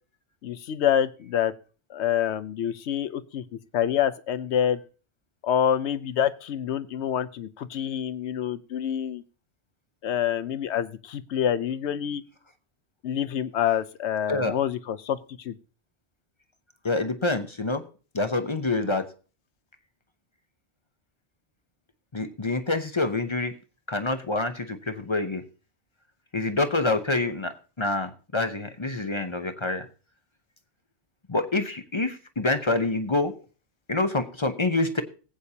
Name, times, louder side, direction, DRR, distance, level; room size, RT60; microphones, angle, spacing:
voice 1, 0.4-1.5 1.9-3.4 3.7-4.8 5.4-9.2 10.0-12.2 13.0-15.2 15.4-15.5, left 9 dB, 80° left, 13 dB, 1.0 m, -26 dB
voice 2, 16.8-17.8 18.1-19.1 22.1-23.5 23.9-25.4 26.3-29.9 31.3-33.3 33.9-35.0, left 2 dB, 30° left, 8 dB, 0.7 m, -26 dB
19.5 x 8.3 x 2.8 m, 0.37 s
omnidirectional pair, 1.1 m